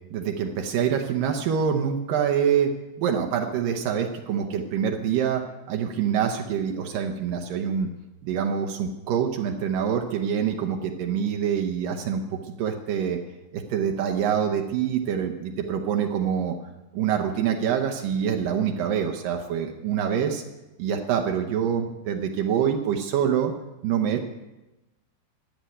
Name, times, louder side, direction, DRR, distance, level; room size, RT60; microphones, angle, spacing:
voice 1, 0.1-2.7 3.0-5.4 5.7-7.9 8.2-13.2 13.5-16.6 16.9-20.4 20.8-23.5 23.8-24.2, right 8 dB, 90° right, 3 dB, 1.9 m, -25 dB
13.5 x 8.0 x 10.0 m, 1.0 s
omnidirectional pair, 5.4 m